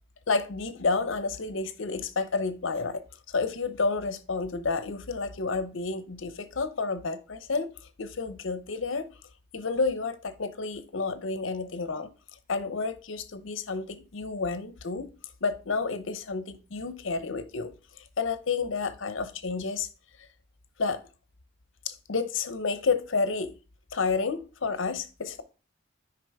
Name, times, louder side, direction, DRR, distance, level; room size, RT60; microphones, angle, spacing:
voice 1, 0.3-3.0 3.3-7.7 8.0-9.0 9.5-12.1 12.5-15.1 15.4-17.7 18.0-19.9 20.8-21.0 21.8-23.5 23.9-25.4, left 4 dB, 80° left, 0.8 m, -30 dB
6.1 x 5.0 x 3.5 m
head